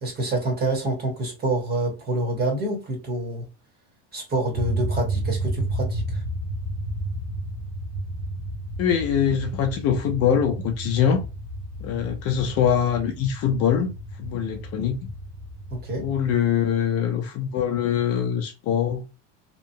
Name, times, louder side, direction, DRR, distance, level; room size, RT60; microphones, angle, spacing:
voice 1, 0.0-3.4 4.1-6.0 15.7-16.1, right 2 dB, 25° right, 1.1 m, -27 dB
sound 1, 4.5-16.4, right 1 dB, 85° right, 1.1 m, -32 dB
voice 2, 8.8-11.2 11.8-13.9 14.2-15.1 16.0-19.0, left 8 dB, 45° left, 0.5 m, -23 dB
2.9 x 2.1 x 2.6 m
supercardioid pair, 150°, 35 cm